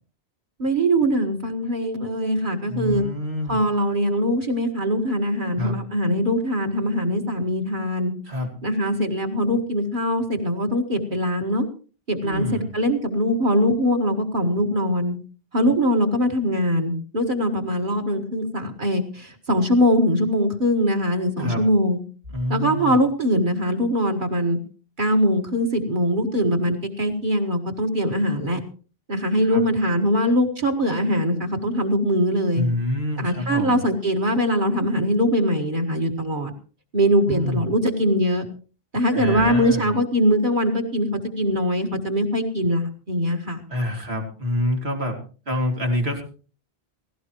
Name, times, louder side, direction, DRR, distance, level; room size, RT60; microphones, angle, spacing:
voice 1, 0.6-3.1 3.5-8.1 8.6-11.7 12.1-15.2 15.5-22.0 22.5-24.6 25.0-28.6 29.1-32.6 33.2-36.5 36.9-38.4 38.9-43.6, equal, 50° right, 2 dB, 2.0 m, -22 dB
voice 2, 2.7-3.6 5.6-5.8 8.2-8.5 12.2-12.7 21.4-21.6 22.3-23.0 29.4-29.6 32.5-33.8 37.3-37.7 39.1-39.9 43.7-45.2 45.5-46.2, left 1 dB, 85° right, 2 dB, 3.0 m, -26 dB
17.5 x 16.0 x 3.1 m, 0.37 s
omnidirectional pair, 1.1 m